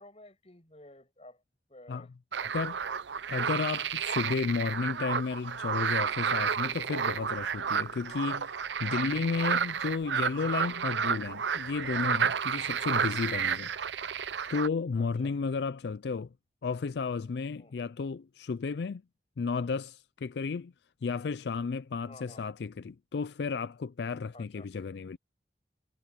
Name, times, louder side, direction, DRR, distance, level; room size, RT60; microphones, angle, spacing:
voice 1, 0.0-1.4 1.7-2.1 2.4-3.0 9.1-9.4 12.7-13.0 14.9-15.3 17.6-17.9 22.0-22.4 24.3-24.7, left 2 dB, 35° left, 6.4 m, -53 dB
sound 1, 2.3-14.7, right 7 dB, 90° right, 0.7 m, -31 dB
voice 2, 3.3-8.5 8.8-13.7 14.5-16.3 16.6-19.0 19.4-20.7 21.0-25.2, left 5 dB, 75° left, 0.4 m, -33 dB
head